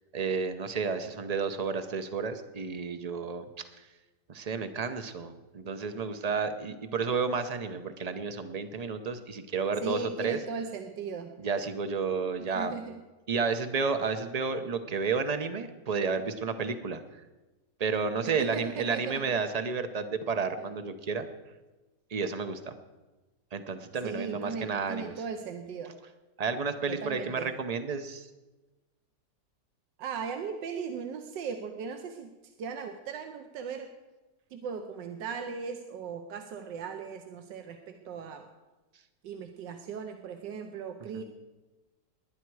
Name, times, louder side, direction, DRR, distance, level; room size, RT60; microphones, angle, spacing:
voice 1, 0.1-3.4 4.3-10.4 11.4-12.7 13.3-17.0 17.8-21.3 22.1-22.7 23.5-25.1 26.4-28.3 41.1-41.2, right 5 dB, 55° right, 9 dB, 0.4 m, -31 dB
voice 2, 9.8-11.3 12.5-13.0 18.2-19.2 20.6-20.7 24.0-25.9 26.9-27.5 30.0-32.3 32.6-33.9 34.5-38.4 39.2-41.2, right 6 dB, 90° right, 5 dB, 1.5 m, -38 dB
20.0 x 10.5 x 4.7 m, 1.2 s
omnidirectional pair, 1.9 m